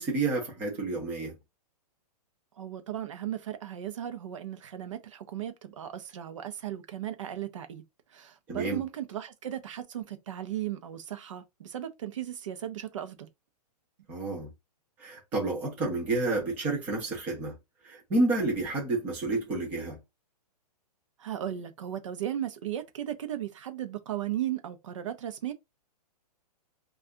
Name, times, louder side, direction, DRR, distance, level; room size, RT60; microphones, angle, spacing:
voice 1, 0.0-1.4 8.5-8.8 14.1-14.5 15.0-17.5 17.8-20.0, right 2 dB, 10° right, 0.5 m, -30 dB
voice 2, 2.6-7.8 8.1-13.3 21.2-25.5, right 11 dB, 50° right, 0.7 m, -36 dB
2.7 x 2.4 x 3.4 m
hypercardioid pair, 180°, 21 cm